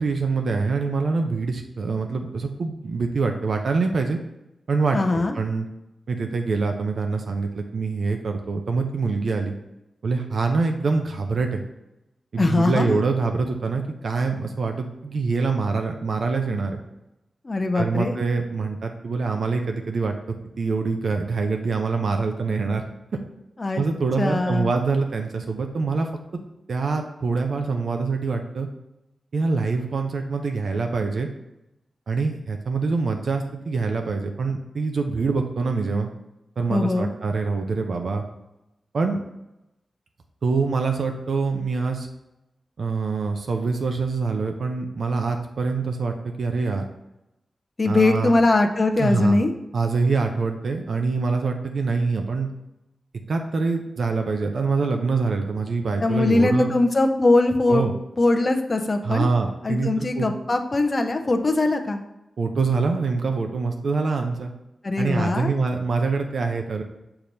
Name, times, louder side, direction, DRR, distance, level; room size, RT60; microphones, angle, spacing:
voice 1, 0.0-4.2 4.7-5.7 6.1-9.5 10.0-11.6 12.3-16.8 17.7-22.8 23.7-26.1 26.7-28.7 29.3-31.3 32.1-36.1 36.6-38.2 38.9-39.2 40.4-42.1 42.8-46.8 47.9-48.4 49.0-49.4 49.7-52.5 53.3-56.7 57.7-57.9 59.0-60.3 62.4-64.5 65.0-66.8, right 4 dB, 65° right, 4 dB, 0.6 m, -25 dB
voice 2, 4.9-5.3 12.4-12.9 17.4-18.1 23.6-23.8 24.2-24.7 36.7-37.1 47.8-49.5 56.0-57.8 58.2-59.3 59.6-62.0 64.8-65.5, left 2 dB, 30° left, 5 dB, 0.6 m, -21 dB
6.7 x 3.0 x 5.2 m, 0.91 s
wide cardioid pair, 130°, 0 cm